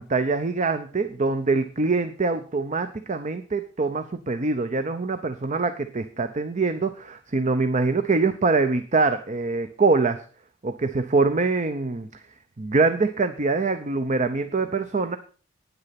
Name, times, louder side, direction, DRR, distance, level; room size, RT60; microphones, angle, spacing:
voice 1, 0.0-10.2 10.6-12.1 12.6-15.2, right 3 dB, 35° right, 9 dB, 0.7 m, -24 dB
9.8 x 9.5 x 5.8 m, 0.40 s
head